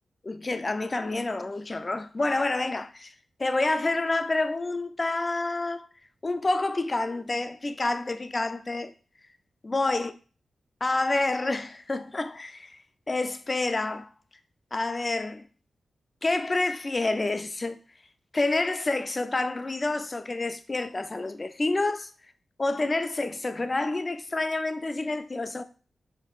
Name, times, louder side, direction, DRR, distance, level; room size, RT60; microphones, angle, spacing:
voice 1, 0.2-3.1 3.4-5.9 6.2-8.9 9.6-10.1 10.8-12.8 13.1-14.1 14.7-15.4 16.2-17.8 18.3-22.1 22.6-25.6, left 2 dB, 40° left, 0.4 m, -28 dB
4.2 x 2.9 x 2.4 m
cardioid pair, 45°, 0 cm